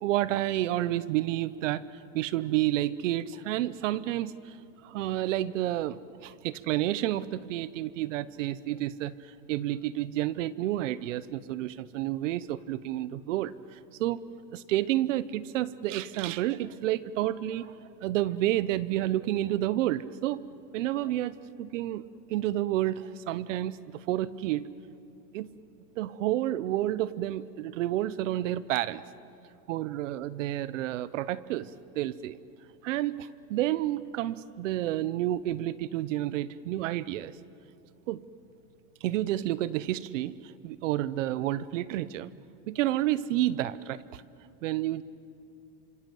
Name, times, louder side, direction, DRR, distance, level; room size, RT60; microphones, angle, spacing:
voice 1, 0.0-1.8 2.1-4.6 4.8-14.2 14.5-20.4 20.7-22.0 22.3-24.7 25.3-25.5 26.0-29.0 29.7-32.4 32.8-37.3 38.1-38.2 39.0-42.3 42.7-44.2 44.6-45.0, right 14 dB, 50° right, 18 dB, 0.8 m, -30 dB
28.0 x 26.0 x 7.7 m, 2.7 s
supercardioid pair, 175°, 47 cm